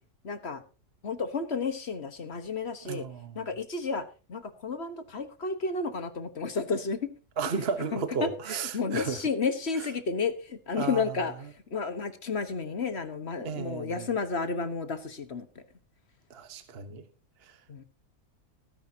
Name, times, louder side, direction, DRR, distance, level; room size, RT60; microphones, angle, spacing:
voice 1, 0.2-0.6 1.0-3.1 3.3-4.0 4.3-7.1 7.9-8.3 8.7-11.3 11.7-15.5 17.7-17.8, left 4 dB, 45° left, 1.5 m, -31 dB
voice 2, 2.8-3.4 7.4-9.2 9.8-9.9 10.8-11.2 13.4-14.1 16.3-17.0 17.4-17.6, right 5 dB, 45° right, 1.3 m, -34 dB
19.5 x 10.5 x 2.9 m
omnidirectional pair, 1.6 m